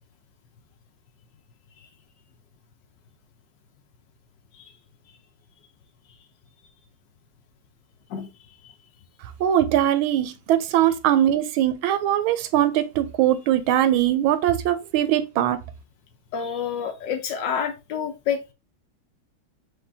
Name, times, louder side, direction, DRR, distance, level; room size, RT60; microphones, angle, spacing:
voice 1, 8.1-8.7 16.3-18.5, left 7 dB, 70° left, 1.2 m, -29 dB
voice 2, 9.4-15.6, right 11 dB, 80° right, 1.4 m, -21 dB
4.9 x 2.8 x 3.3 m
omnidirectional pair, 2.3 m